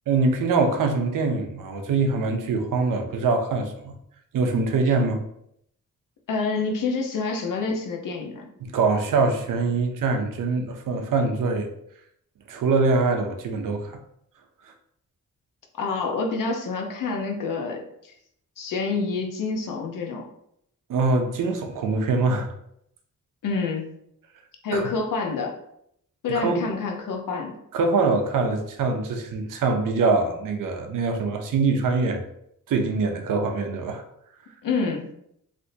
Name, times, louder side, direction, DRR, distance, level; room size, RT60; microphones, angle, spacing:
voice 1, 0.1-3.9 4.3-5.2 8.6-11.7 12.5-14.0 20.9-22.5 24.7-24.9 26.3-26.7 27.7-32.2 32.7-34.0, right 3 dB, 85° right, 4 dB, 0.6 m, -23 dB
voice 2, 6.3-8.5 15.8-17.8 18.6-20.2 23.4-23.9 24.6-25.5 26.2-27.6 34.6-35.1, left 4 dB, 80° left, 2 dB, 0.7 m, -27 dB
3.4 x 2.6 x 2.7 m, 0.74 s
wide cardioid pair, 115°, 32 cm